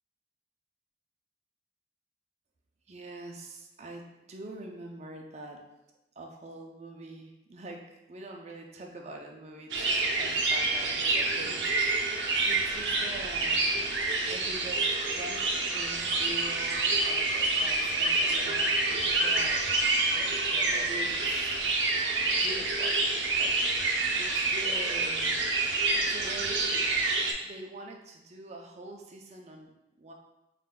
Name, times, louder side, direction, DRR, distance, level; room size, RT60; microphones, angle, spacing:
voice 1, 2.9-5.6 6.2-14.0 14.3-15.4 15.7-19.6 20.1-21.5 22.4-23.0 23.3-25.5 25.9-26.9 27.4-29.7 30.0-30.1, right 2 dB, 40° right, 1 dB, 0.5 m, -44 dB
sound 1, 9.7-27.3, right 3 dB, 80° right, 0.6 m, -27 dB
4.2 x 3.7 x 2.2 m, 0.94 s
head